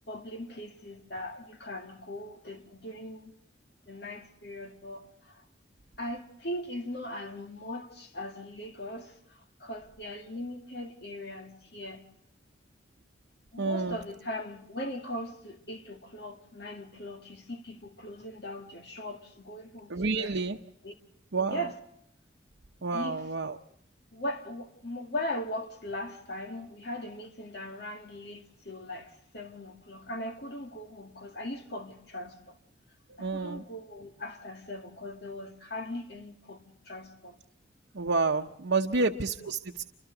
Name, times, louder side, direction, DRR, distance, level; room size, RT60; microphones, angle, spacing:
voice 1, 0.1-3.4 3.9-5.4 6.0-12.1 13.5-20.4 20.8-20.9 21.5-21.7 22.9-23.2 24.1-32.6 33.2-37.4 38.9-39.1, left 1 dB, 60° left, 2.2 m, -39 dB
voice 2, 13.6-14.0 19.9-20.6 21.3-21.6 22.8-23.6 33.1-33.6 37.9-39.8, right 3 dB, 80° right, 0.9 m, -29 dB
29.5 x 26.0 x 4.0 m
head